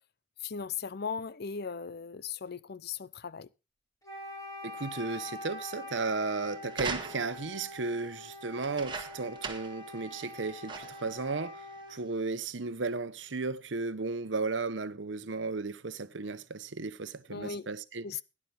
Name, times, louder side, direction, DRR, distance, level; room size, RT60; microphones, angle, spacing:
voice 1, 0.4-3.5 17.3-17.7 18.0-18.2, left 6 dB, 55° left, 0.6 m, -38 dB
Wind instrument woodwind instrument, 4.0-12.1, left 1 dB, 20° left, 7.5 m, -45 dB
voice 2, 4.6-18.1, right 3 dB, 70° right, 0.9 m, -35 dB
sound 1, 6.7-7.5 8.6-9.8 10.2-10.3 10.7-11.1 11.9-12.0, right 4 dB, 25° right, 1.7 m, -39 dB
16.5 x 11.0 x 3.4 m
head